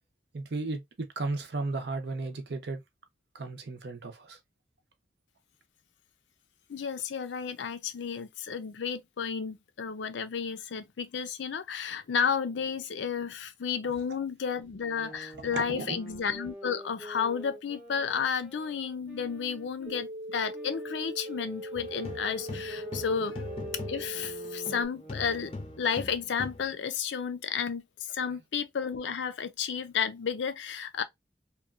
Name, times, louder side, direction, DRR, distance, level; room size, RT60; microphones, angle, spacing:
voice 1, 0.3-2.8 3.3-4.4 15.1-15.2 15.5-16.0 23.1-23.2 28.2-28.3, right 3 dB, 70° right, 0.6 m, -35 dB
voice 2, 6.7-23.4 23.9-31.0, left 6 dB, 90° left, 0.5 m, -32 dB
sound 1, 14.8-20.0 20.5-26.1, right 1 dB, 10° right, 0.7 m, -48 dB
sound 2, 19.9-24.9, equal, 30° right, 0.3 m, -40 dB
sound 3, 21.7-24.8 25.1-26.7, left 2 dB, 30° left, 0.5 m, -41 dB
2.9 x 2.2 x 2.4 m
head